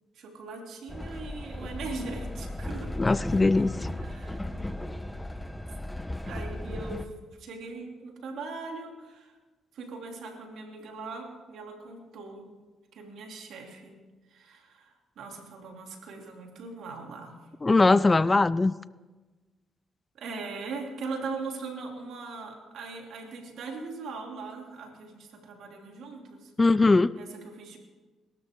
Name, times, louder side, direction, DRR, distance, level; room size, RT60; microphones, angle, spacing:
voice 1, 0.1-2.9 4.0-4.5 6.2-7.1 7.4-9.3 9.7-12.5 12.9-13.9 14.3-17.4 20.2-26.5 27.2-27.8, right 4 dB, 75° right, 2.9 m, -40 dB
Train, 0.9-7.1, left 1 dB, 5° left, 0.9 m, -36 dB
voice 2, 3.0-3.8 17.6-18.7 26.6-27.1, left 3 dB, 25° left, 0.3 m, -21 dB
22.0 x 12.5 x 3.8 m
cardioid pair, 80°, 0 cm